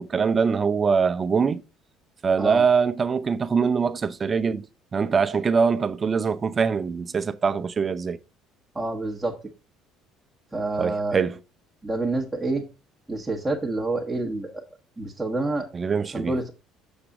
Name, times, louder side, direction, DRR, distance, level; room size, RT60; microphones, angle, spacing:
voice 1, 0.0-1.6 2.2-4.6 4.9-8.2 10.8-11.4 15.7-16.3, right 5 dB, 30° right, 0.6 m, -23 dB
voice 2, 8.7-9.4 10.5-11.2 11.8-12.6 13.1-14.7 15.0-15.7 16.1-16.5, right 2 dB, 10° right, 1.3 m, -27 dB
7.1 x 6.5 x 3.7 m
cardioid pair, 110°, 0 cm